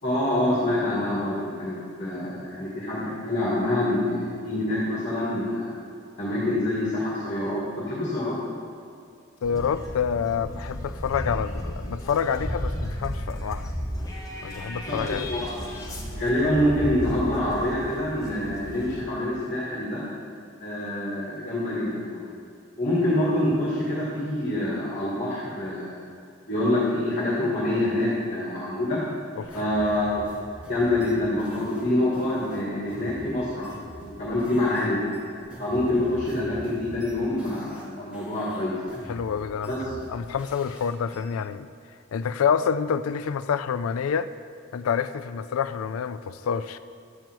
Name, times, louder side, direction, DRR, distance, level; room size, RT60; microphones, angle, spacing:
voice 1, 0.0-5.7 6.2-8.4 14.9-15.5 16.1-20.0 20.6-22.2 22.8-26.0 26.5-29.0 29.5-30.2 30.7-35.0 35.6-39.0 39.7-39.8, left 1 dB, 35° left, -6 dB, 2.1 m, -26 dB
voice 2, 9.4-13.7 14.4-15.3 29.4-29.6 39.1-41.7 42.1-44.3 44.7-46.8, left 7 dB, 85° left, 13 dB, 0.4 m, -27 dB
sound 1, 9.4-19.0, equal, 15° left, 1.3 m, -34 dB
sound 2, 29.5-34.9 35.1-37.9 38.1-41.2, equal, 5° right, 1.1 m, -44 dB
12.0 x 8.9 x 4.6 m, 2.5 s
head